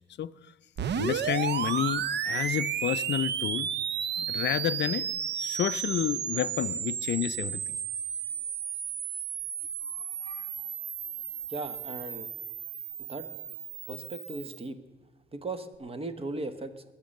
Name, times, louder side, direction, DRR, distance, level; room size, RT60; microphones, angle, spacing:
sound 1, 0.8-14.6, right 8 dB, 60° right, 0.7 m, -33 dB
voice 1, 1.0-3.7 4.2-5.1 5.4-7.8 10.2-10.5, left 11 dB, 60° left, 0.5 m, -30 dB
voice 2, 11.5-12.3 13.1-13.3 13.9-14.8 15.3-16.8, right 2 dB, 30° right, 1.2 m, -37 dB
21.0 x 7.3 x 6.4 m
cardioid pair, 105°, 20 cm